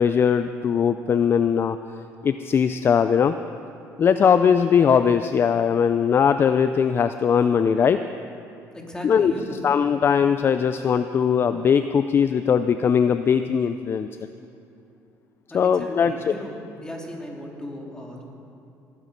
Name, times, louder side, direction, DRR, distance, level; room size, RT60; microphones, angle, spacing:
voice 1, 0.0-1.8 2.2-3.4 4.0-8.0 9.0-9.3 9.6-14.1 15.5-16.1, left 7 dB, 40° left, 11 dB, 0.4 m, -20 dB
voice 2, 8.7-9.6 15.5-16.5 16.8-18.2, left 1 dB, 10° left, 0 dB, 2.5 m, -36 dB
18.5 x 11.0 x 5.3 m, 2.6 s
cardioid pair, 110°, 6 cm